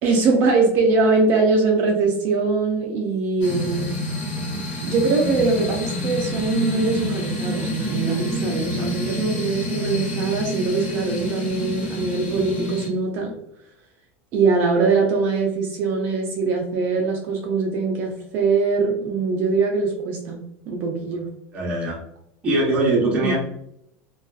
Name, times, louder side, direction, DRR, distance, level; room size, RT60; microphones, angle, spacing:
voice 1, 0.0-4.0 4.8-13.3 14.3-20.4 20.7-21.3 23.2-23.4, right 4 dB, 30° right, 0 dB, 0.3 m, -22 dB
sound 1, 3.4-12.9, left 1 dB, 40° left, 0.9 m, -28 dB
voice 2, 21.5-22.0 22.4-23.4, right 2 dB, 15° right, -4 dB, 0.7 m, -21 dB
2.5 x 2.2 x 2.3 m, 0.77 s
supercardioid pair, 180°, 7 cm